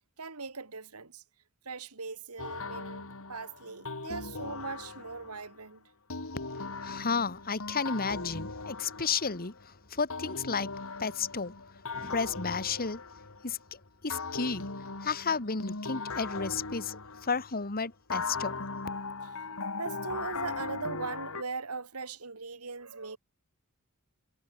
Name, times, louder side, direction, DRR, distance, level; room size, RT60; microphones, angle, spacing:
voice 1, 0.2-1.2 1.6-5.8 19.2-19.5 19.8-23.2, right 4 dB, 85° right, 2.7 m, -40 dB
sound 1, 2.4-5.5 6.1-9.6 10.1-13.6 14.1-17.6 18.1-21.4, left 4 dB, 65° left, 2.6 m, -39 dB
voice 2, 6.8-10.7 11.0-11.5 11.9-13.0 13.4-14.7 15.0-18.6, left 5 dB, 45° left, 1.9 m, -32 dB
head